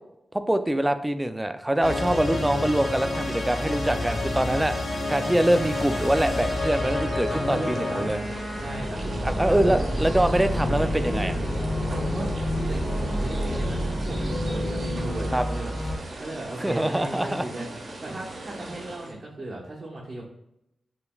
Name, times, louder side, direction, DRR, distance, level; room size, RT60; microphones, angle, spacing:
voice 1, 0.3-4.7 5.1-8.2 9.2-11.4 15.3-15.4 16.6-17.4, right 1 dB, 15° right, 9 dB, 0.4 m, -24 dB
sound 1, 1.8-16.0, left 2 dB, 70° left, 1.2 m, -30 dB
sound 2, 5.4-19.1, right 2 dB, 60° right, 1.0 m, -39 dB
voice 2, 7.3-9.8 12.0-12.3 12.7-14.2 14.5-17.7 18.0-20.2, right 1 dB, 40° right, -4 dB, 1.1 m, -36 dB
sound 3, 8.4-16.3, right 1 dB, 10° left, 0.8 m, -32 dB
6.6 x 3.0 x 2.3 m, 0.80 s
cardioid pair, 60°, 0 cm